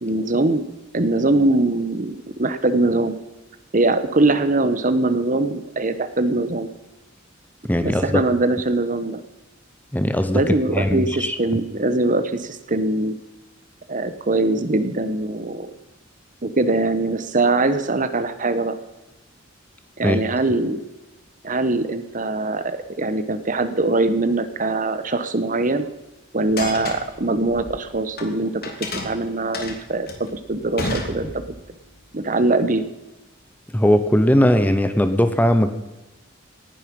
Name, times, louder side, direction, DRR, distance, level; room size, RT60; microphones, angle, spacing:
voice 1, 0.0-3.1 3.7-6.7 7.8-9.2 10.3-13.1 13.9-15.7 16.4-18.8 20.0-20.8 21.4-25.8 26.3-31.4 32.1-32.8, right 2 dB, 45° right, 11 dB, 1.2 m, -22 dB
voice 2, 7.6-8.2 9.9-11.4 20.0-20.2 33.7-35.7, equal, 10° left, 9 dB, 1.0 m, -19 dB
sound 1, 26.5-28.3 28.6-31.7, left 2 dB, 50° left, 2.8 m, -31 dB
18.5 x 11.0 x 5.4 m, 1.1 s
head